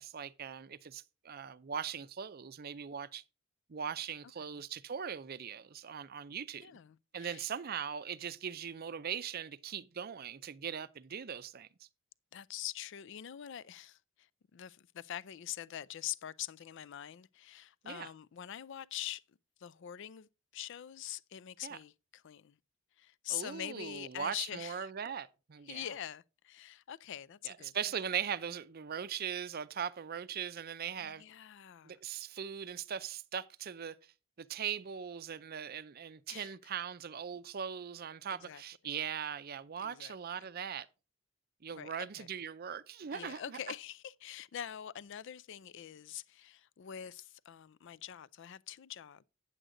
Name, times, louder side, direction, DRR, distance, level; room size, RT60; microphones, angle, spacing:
voice 1, 0.0-3.2 3.7-6.7 7.1-11.7 17.8-18.1 21.6-21.8 23.3-25.9 27.4-31.2 31.8-34.0 34.4-40.9 41.6-43.6, right 8 dB, 45° right, 0.5 m, -40 dB
voice 2, 6.6-7.4 12.3-19.2 19.6-22.6 23.0-24.9 25.7-27.7 31.0-32.0 36.3-36.5 38.4-38.6 39.8-40.5 41.7-42.3 43.1-49.2, left 11 dB, 60° left, 0.4 m, -44 dB
9.1 x 7.8 x 3.8 m
head